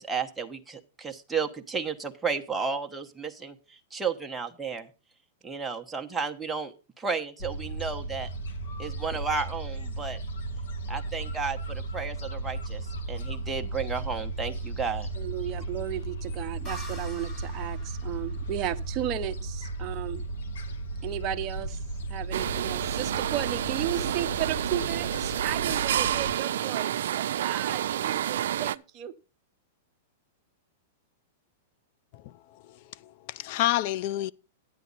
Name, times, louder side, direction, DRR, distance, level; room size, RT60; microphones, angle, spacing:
voice 1, 0.0-3.5 3.9-4.9 5.4-8.3 8.8-10.2 10.9-15.1, right 5 dB, 10° right, 1.0 m, -33 dB
Gull seagull, 7.4-26.3, right 2 dB, 80° left, 2.1 m, -35 dB
voice 2, 15.1-20.2 21.0-21.8 22.1-29.1, right 11 dB, 30° right, 0.9 m, -34 dB
sound 1, 16.6-20.2, equal, 15° left, 2.3 m, -46 dB
sound 2, 22.3-28.8, right 11 dB, 75° right, 0.4 m, -29 dB
voice 3, 33.0-34.3, left 14 dB, 50° left, 0.5 m, -28 dB
10.5 x 9.4 x 4.0 m
hypercardioid pair, 140°, 0 cm